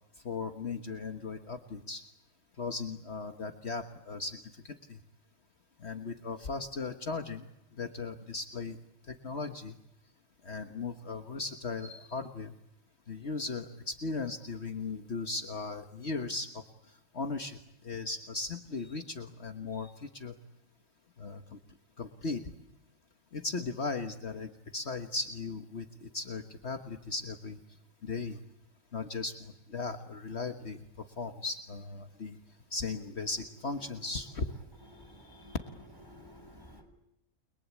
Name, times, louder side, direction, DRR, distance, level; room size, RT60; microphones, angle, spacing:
voice 1, 0.2-2.0 2.6-5.0 5.8-7.5 7.8-8.8 9.1-9.7 10.4-12.5 13.1-16.6 17.1-17.6 17.8-20.3 21.2-21.6 22.0-22.4 23.3-27.6 28.0-28.4 28.9-32.4 32.7-34.5, left 3 dB, 55° left, 6 dB, 1.7 m, -37 dB
voice 2, 34.9-35.6 36.1-36.8, left 1 dB, 15° right, 4 dB, 7.4 m, -53 dB
30.0 x 22.5 x 8.5 m, 0.82 s
omnidirectional pair, 1.4 m